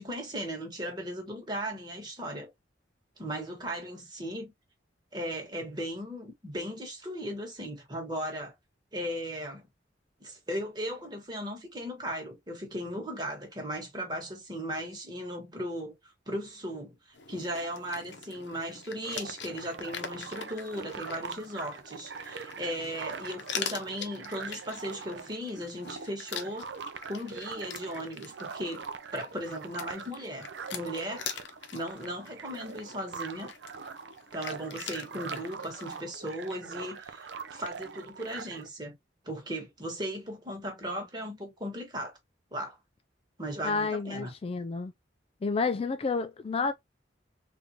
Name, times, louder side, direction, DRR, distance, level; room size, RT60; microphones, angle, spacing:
voice 1, 0.0-2.5 3.2-4.5 5.1-8.5 8.9-9.7 10.2-17.0 17.3-26.7 27.1-28.8 29.1-31.3 31.7-33.5 34.3-38.9 39.2-42.1 42.5-42.8 43.4-44.3, equal, 25° right, 1.3 m, -37 dB
sound 1, 17.1-36.0, left 7 dB, 70° left, 0.7 m, -44 dB
sound 2, 19.0-38.7, right 5 dB, 70° right, 0.5 m, -43 dB
voice 2, 43.6-44.9 45.4-46.7, left 4 dB, 30° left, 0.3 m, -30 dB
3.6 x 2.6 x 2.7 m
head